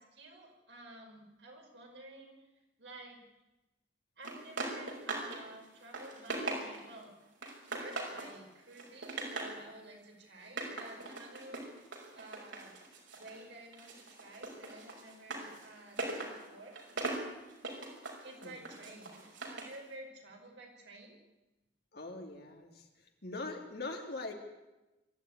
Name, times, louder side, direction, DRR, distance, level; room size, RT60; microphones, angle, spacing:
voice 1, 0.0-2.3 2.8-3.2 4.2-7.1 7.8-11.6 12.1-12.8 13.2-16.7 18.2-21.2, right 2 dB, 65° right, 1 dB, 5.5 m, -52 dB
sound 1, 4.2-5.4 5.7-7.0 7.4-8.3 8.7-9.6 10.4-13.4 13.7-19.8, right 2 dB, 85° right, 5.7 m, -40 dB
voice 2, 21.9-22.9 23.2-24.3, left 3 dB, 55° left, 2 dB, 3.4 m, -42 dB
23.5 x 13.0 x 9.6 m, 1.0 s
head